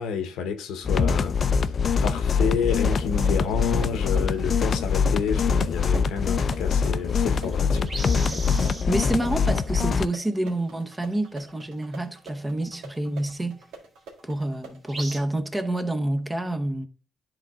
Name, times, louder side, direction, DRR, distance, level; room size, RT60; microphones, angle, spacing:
voice 1, 0.0-1.4 2.0-7.9, left 6 dB, 90° left, 1.0 m, -29 dB
sound 1, 0.8-10.1, left 5 dB, 45° left, 0.4 m, -23 dB
sound 2, 2.6-15.2, right 3 dB, 90° right, 1.6 m, -47 dB
sound 3, 3.4-4.6 5.3-5.6 5.9-6.0 6.9-8.9 10.4-10.6 11.1-11.5 12.5-12.6 14.9-15.2, right 2 dB, 30° right, 2.0 m, -38 dB
voice 2, 8.3-13.6 14.2-16.9, right 1 dB, 15° right, 0.9 m, -28 dB
10.0 x 3.8 x 3.6 m
cardioid pair, 90°, 0 cm